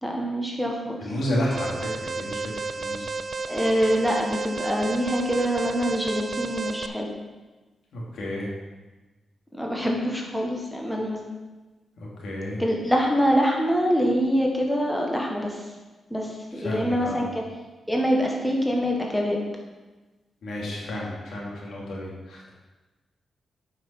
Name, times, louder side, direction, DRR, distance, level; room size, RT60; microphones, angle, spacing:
voice 1, 0.0-1.0 3.5-7.1 9.5-11.2 12.6-15.6 16.1-17.4 17.9-19.4, equal, 5° left, -1 dB, 1.5 m, -25 dB
voice 2, 1.0-3.1 7.9-8.5 12.0-12.6 16.6-17.2 20.4-22.5, left 1 dB, 75° left, -4 dB, 2.7 m, -31 dB
Alarm, 1.5-6.9, right 3 dB, 45° right, 0.5 m, -32 dB
8.7 x 5.8 x 5.8 m, 1.2 s
cardioid pair, 95°, 0 cm